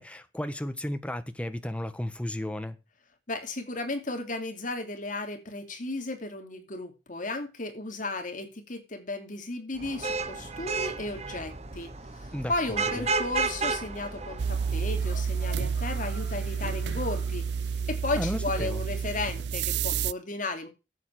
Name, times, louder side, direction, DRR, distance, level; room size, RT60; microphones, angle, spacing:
voice 1, 0.0-2.8 12.3-12.8 18.2-18.8, left 1 dB, 5° left, 1.2 m, -34 dB
voice 2, 3.3-11.9 12.2-17.4 17.9-20.7, left 2 dB, 50° left, 2.9 m, -34 dB
Vehicle horn car horn honking / Traffic noise roadway noise, 9.8-15.1, right 4 dB, 40° right, 1.1 m, -32 dB
sound 1, 13.8-19.4, left 1 dB, 70° left, 3.6 m, -51 dB
sound 2, 14.4-20.1, right 6 dB, 65° right, 0.5 m, -30 dB
11.5 x 8.4 x 4.8 m
head